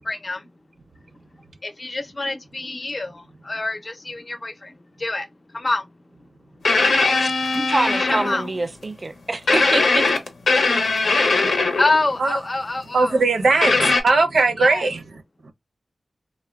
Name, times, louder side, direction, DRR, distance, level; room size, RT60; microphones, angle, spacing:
voice 1, 0.1-0.4 1.6-3.1 3.5-4.7 5.0-5.3 5.5-5.8 8.0-8.5 11.8-13.2 13.5-13.7 14.6-14.9, left 2 dB, 35° left, 0.5 m, -26 dB
sound 1, 6.6-8.6 9.5-12.1 13.6-14.0, left 3 dB, 85° left, 0.6 m, -20 dB
voice 2, 7.2-10.1 11.4-11.5, right 2 dB, 35° right, 0.4 m, -26 dB
voice 3, 12.9-15.5, right 3 dB, 85° right, 0.5 m, -20 dB
3.4 x 2.1 x 2.2 m
wide cardioid pair, 95°, 0 cm